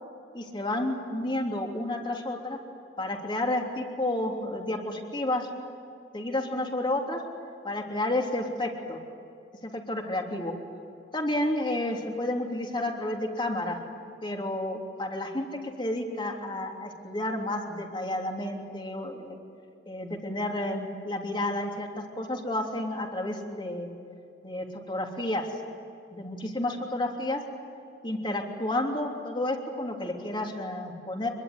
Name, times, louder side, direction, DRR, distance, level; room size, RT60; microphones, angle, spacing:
voice 1, 0.3-2.6 3.0-5.5 6.1-7.2 7.6-9.0 9.6-10.5 11.1-13.8 14.2-15.5 15.8-19.4 19.9-23.9 24.4-25.5 26.1-27.4 28.0-31.3, left 1 dB, 25° left, 2 dB, 3.2 m, -31 dB
25.5 x 22.5 x 9.7 m, 2.6 s
head